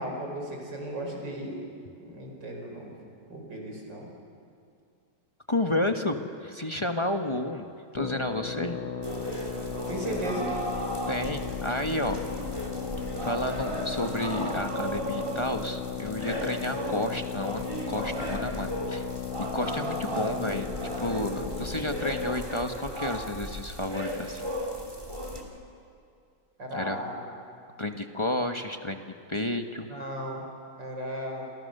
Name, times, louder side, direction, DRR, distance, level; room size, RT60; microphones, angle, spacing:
voice 1, 0.0-1.6 2.0-3.0 3.3-4.1 9.9-10.5 26.6-27.3 29.9-30.4 30.8-31.5, right 1 dB, 55° right, 1 dB, 5.4 m, -35 dB
voice 2, 5.5-8.8 11.1-12.2 13.2-19.1 19.5-20.7 21.0-24.4 26.7-27.0 27.8-29.9, left 1 dB, 20° left, 6 dB, 0.8 m, -31 dB
sound 1, 7.9-22.5, left 9 dB, 80° left, 2.0 m, -36 dB
sound 2, 9.0-25.4, equal, 15° right, 2.8 m, -35 dB
29.5 x 26.5 x 6.7 m, 2.4 s
omnidirectional pair, 2.3 m